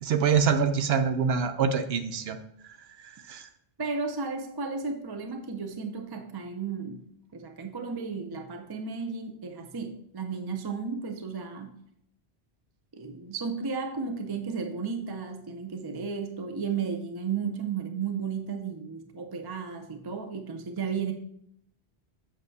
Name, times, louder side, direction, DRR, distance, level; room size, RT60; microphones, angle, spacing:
voice 1, 0.0-2.4 3.3-3.5, right 6 dB, 70° right, 8 dB, 0.8 m, -25 dB
voice 2, 3.8-7.0 7.3-11.8 12.9-21.1, right 5 dB, 35° right, 6 dB, 0.4 m, -34 dB
7.5 x 6.0 x 2.7 m, 0.72 s
omnidirectional pair, 1.1 m